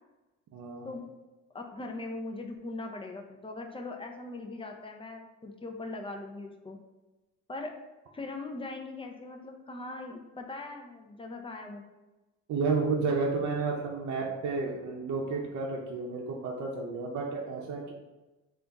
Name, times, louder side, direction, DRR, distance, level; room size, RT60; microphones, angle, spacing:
voice 1, 0.5-0.9 12.5-17.9, right 4 dB, 70° right, -2 dB, 0.6 m, -31 dB
voice 2, 1.5-6.8 7.5-7.7 8.1-11.8, left 2 dB, 20° left, 2 dB, 0.5 m, -40 dB
3.4 x 2.5 x 4.0 m, 1.1 s
cardioid pair, 90°, 30 cm